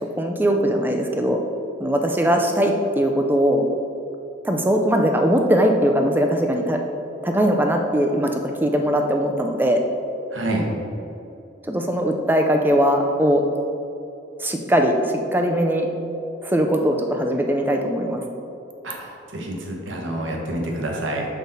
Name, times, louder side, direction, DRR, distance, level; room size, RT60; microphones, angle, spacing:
voice 1, 0.2-1.4 1.8-3.6 4.4-6.8 7.2-9.8 11.7-13.4 14.4-15.9 16.4-18.2, equal, 10° right, 3 dB, 0.4 m, -20 dB
voice 2, 10.3-10.7 18.8-21.3, right 1 dB, 75° right, 0 dB, 1.1 m, -28 dB
6.3 x 5.3 x 4.0 m, 2.7 s
head